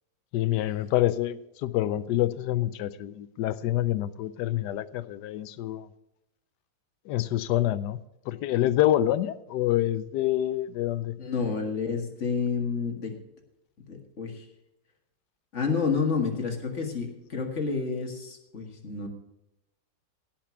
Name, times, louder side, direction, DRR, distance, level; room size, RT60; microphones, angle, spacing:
voice 1, 0.3-5.9 7.1-8.0 8.3-11.1, left 13 dB, 70° left, 15 dB, 1.1 m, -27 dB
voice 2, 11.2-13.1 13.9-14.4 15.5-19.1, left 5 dB, 40° left, 4 dB, 1.8 m, -29 dB
17.0 x 6.0 x 6.0 m, 0.89 s
omnidirectional pair, 2.0 m